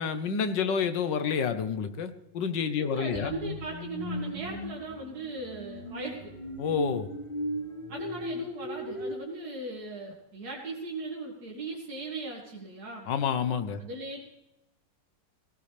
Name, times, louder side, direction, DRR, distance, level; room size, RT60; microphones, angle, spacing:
voice 1, 0.0-3.3 6.6-7.1 13.1-13.8, left 6 dB, 75° left, 10 dB, 1.6 m, -29 dB
voice 2, 2.8-6.3 7.9-13.1 13.8-14.2, right 2 dB, 55° right, -3 dB, 2.5 m, -38 dB
sound 1, 3.1-9.1, equal, 25° left, 3.2 m, -37 dB
18.0 x 17.5 x 3.3 m, 0.93 s
omnidirectional pair, 2.0 m